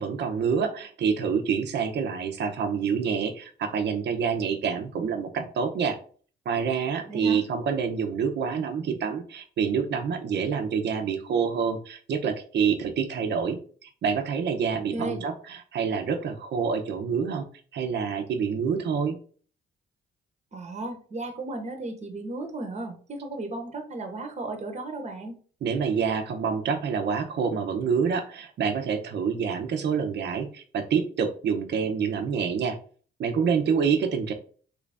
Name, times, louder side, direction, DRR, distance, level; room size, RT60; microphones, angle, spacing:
voice 1, 0.0-6.0 6.5-17.4 17.7-19.2 25.6-32.8 33.2-34.3, right 6 dB, 60° right, 6 dB, 0.7 m, -27 dB
voice 2, 7.1-7.4 14.9-15.2 20.5-25.4, right 2 dB, 35° right, 5 dB, 0.8 m, -35 dB
3.1 x 2.6 x 3.3 m, 0.43 s
cardioid pair, 90°, 20 cm